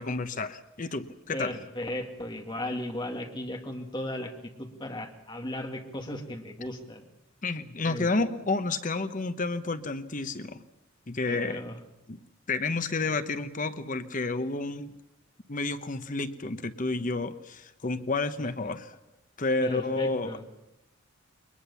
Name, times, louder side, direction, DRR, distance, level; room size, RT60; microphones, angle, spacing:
voice 1, 0.0-1.6 7.4-10.6 11.1-11.6 12.1-12.2 12.5-14.9 15.5-19.0 19.4-20.3, left 3 dB, 40° left, 11 dB, 0.9 m, -30 dB
voice 2, 1.3-7.0 7.9-8.1 11.3-11.7 19.6-20.4, left 1 dB, 20° left, 3 dB, 2.4 m, -36 dB
22.5 x 21.0 x 7.1 m, 0.88 s
head